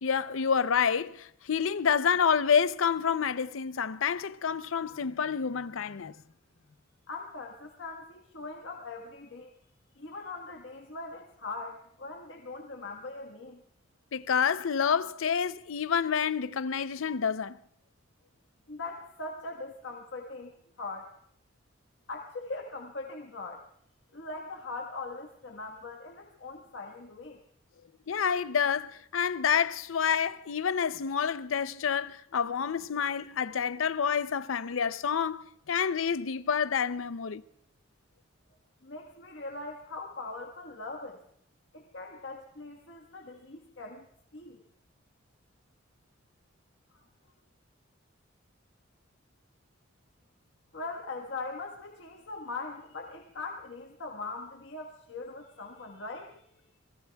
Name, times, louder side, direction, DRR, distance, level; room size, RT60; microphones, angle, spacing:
voice 1, 0.0-6.1 14.1-17.6 28.1-37.4, left 7 dB, 90° left, 0.6 m, -28 dB
voice 2, 7.1-9.5 10.0-13.6 18.7-21.1 22.1-23.6 24.1-27.4 38.8-41.2 41.7-44.1 44.3-44.6 46.9-47.0 50.7-56.7, left 3 dB, 65° left, 1.4 m, -41 dB
28.5 x 20.5 x 2.3 m
head